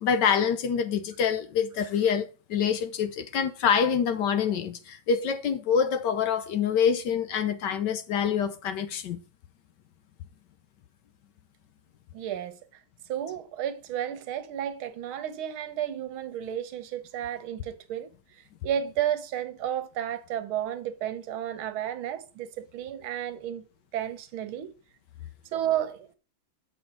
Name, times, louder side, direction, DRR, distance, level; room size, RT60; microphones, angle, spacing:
voice 1, 0.0-9.2, left 7 dB, 65° left, 1.2 m, -26 dB
voice 2, 12.1-12.6 13.1-23.7 23.9-24.7 25.5-26.1, right 10 dB, 80° right, 1.7 m, -32 dB
7.0 x 5.8 x 4.2 m
omnidirectional pair, 2.2 m